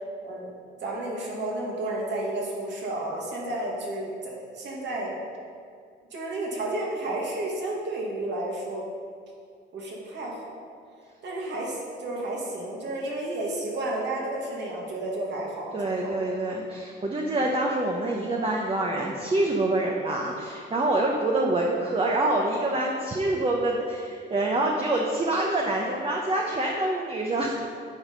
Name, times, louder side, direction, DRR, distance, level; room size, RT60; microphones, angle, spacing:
voice 1, 0.8-5.2 6.1-8.8 9.7-10.5 11.2-16.3, right 2 dB, 65° right, -3 dB, 2.2 m, -32 dB
voice 2, 15.7-27.6, right 2 dB, 30° right, -1 dB, 0.9 m, -26 dB
9.5 x 4.8 x 5.3 m, 2.3 s
cardioid pair, 90°, 20 cm